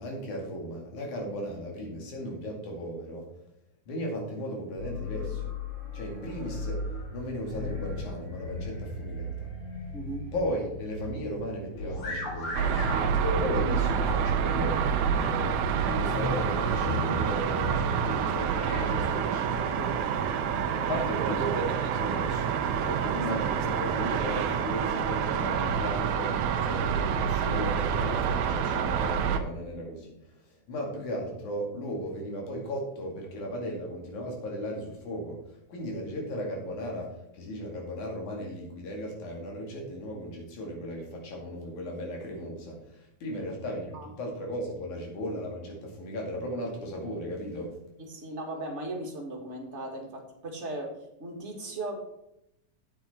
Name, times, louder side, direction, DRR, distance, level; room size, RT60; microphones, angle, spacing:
voice 1, 0.0-3.3 3.9-5.6 5.9-6.8 7.1-9.5 10.3-12.8 13.2-14.8 15.1-20.3 20.7-47.7, equal, 90° left, -1 dB, 3.8 m, -36 dB
sound 1, 4.8-19.1, left 2 dB, 45° left, 2.4 m, -36 dB
voice 2, 9.9-10.3 43.3-43.4 43.9-44.1 48.0-52.0, right 2 dB, 30° right, 1 dB, 1.8 m, -37 dB
sound 2, 12.5-29.4, right 7 dB, 85° right, 2.2 m, -28 dB
8.8 x 8.7 x 4.4 m, 0.80 s
omnidirectional pair, 3.3 m